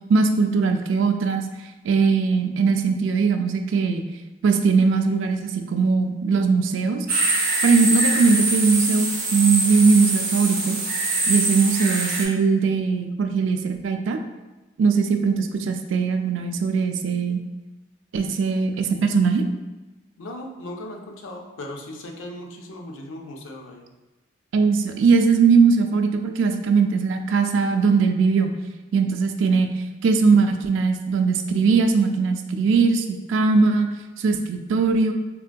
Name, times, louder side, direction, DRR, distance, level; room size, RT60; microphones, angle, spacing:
voice 1, 0.1-1.4 1.8-4.0 4.4-7.1 7.6-10.8 11.3-14.2 14.8-17.4 18.1-19.4 24.5-28.5 28.9-29.7 30.0-33.9 34.2-35.1, right 4 dB, 75° right, 6 dB, 0.3 m, -20 dB
sound 1, 7.1-12.2, right 3 dB, 45° right, 0.7 m, -23 dB
voice 2, 20.2-23.9 29.5-29.6, left 1 dB, 85° left, 2 dB, 0.5 m, -37 dB
3.6 x 2.5 x 2.2 m, 1.1 s
head